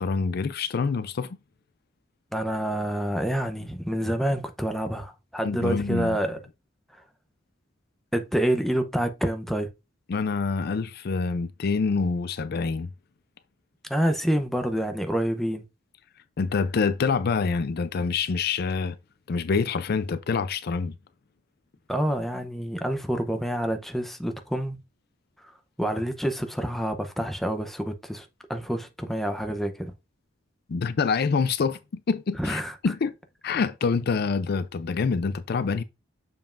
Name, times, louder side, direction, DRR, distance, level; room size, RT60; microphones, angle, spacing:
voice 1, 0.0-1.4 5.4-6.2 10.1-12.9 16.4-19.0 19.3-20.9 30.7-31.8 32.1-33.1 33.4-35.8, left 4 dB, 55° left, 0.4 m, -26 dB
voice 2, 2.3-6.4 8.1-9.7 13.9-15.6 21.9-24.8 25.8-29.9 32.4-32.7, right 1 dB, ahead, 0.7 m, -27 dB
7.0 x 5.4 x 2.5 m
head